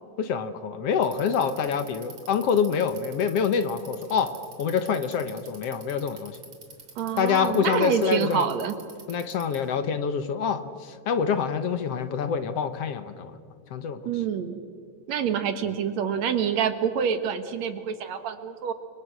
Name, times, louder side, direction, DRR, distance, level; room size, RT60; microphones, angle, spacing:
voice 1, 0.2-6.4 7.2-8.5 9.1-13.3 13.7-14.0, left 6 dB, 60° left, 10 dB, 1.9 m, -26 dB
Bicycle, 0.9-9.7, right 4 dB, 50° right, 3.8 m, -47 dB
voice 2, 7.0-8.8 14.0-14.6 15.1-18.7, right 7 dB, 65° right, 9 dB, 2.6 m, -27 dB
29.5 x 25.5 x 6.1 m, 2.2 s
omnidirectional pair, 3.4 m